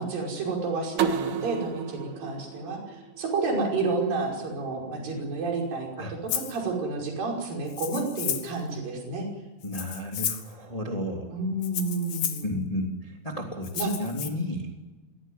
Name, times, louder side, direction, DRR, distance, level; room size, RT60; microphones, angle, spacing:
voice 1, 0.0-5.9 6.3-9.3 11.3-12.6 13.8-13.9 14.2-14.4, right 3 dB, 45° right, 0 dB, 6.9 m, -30 dB
sound 1, 1.0-3.8, right 7 dB, 65° right, 3.2 m, -32 dB
Rattle (instrument), 6.3-6.6 7.7-8.6 9.6-10.5 11.6-12.5 13.6-14.3, left 10 dB, 60° left, 3.0 m, -32 dB
voice 2, 9.6-11.3 12.4-14.7, left 1 dB, 10° left, 2 dB, 1.8 m, -33 dB
23.0 x 17.5 x 9.5 m, 1.2 s
omnidirectional pair, 5.8 m